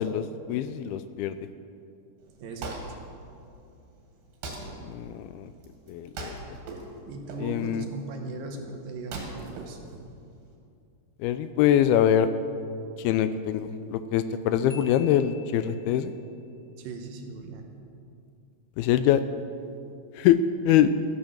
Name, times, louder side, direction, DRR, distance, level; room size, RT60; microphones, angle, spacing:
voice 1, 0.0-1.4 4.8-5.5 5.9-6.4 7.4-7.9 11.2-12.3 13.0-16.1 18.8-19.2 20.2-20.9, left 10 dB, 80° left, 11 dB, 2.4 m, -24 dB
Wood, 2.2-10.5, right 2 dB, 90° right, 4.2 m, -42 dB
voice 2, 2.4-2.8 7.1-9.8 16.8-17.7, right 3 dB, 70° right, 4 dB, 2.5 m, -38 dB
Marimba xylophone, 14.7-16.1, left 5 dB, 5° right, 2.1 m, -49 dB
14.0 x 10.5 x 7.3 m, 2.5 s
omnidirectional pair, 4.6 m